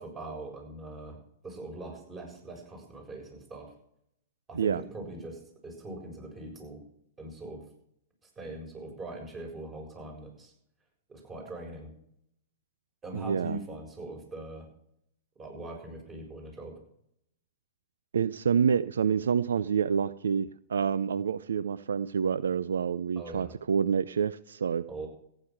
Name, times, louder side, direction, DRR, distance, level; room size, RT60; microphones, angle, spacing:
voice 1, 0.0-3.7 4.5-6.8 7.2-7.7 8.4-10.5 11.1-11.9 13.0-14.7 15.4-16.7 23.2-23.5 24.9-25.1, right 2 dB, 20° right, 2 dB, 7.0 m, -42 dB
voice 2, 13.1-13.6 18.1-24.8, right 7 dB, 80° right, 17 dB, 0.5 m, -28 dB
15.0 x 10.0 x 6.1 m, 0.73 s
hypercardioid pair, 115°, 0 cm